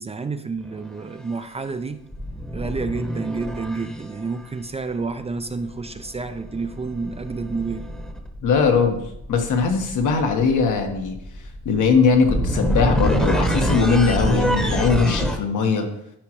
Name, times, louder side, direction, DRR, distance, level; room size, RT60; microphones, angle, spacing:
voice 1, 0.0-2.0 2.5-7.8, right 4 dB, 20° right, 10 dB, 0.4 m, -29 dB
sound 1, 0.6-0.9 2.1-4.2 6.1-15.4, equal, ahead, 0.9 m, -26 dB
voice 2, 8.4-9.0 9.3-11.2 11.6-15.9, left 5 dB, 75° left, 4 dB, 1.3 m, -20 dB
12.0 x 4.9 x 3.0 m, 0.81 s
cardioid pair, 115°, 31 cm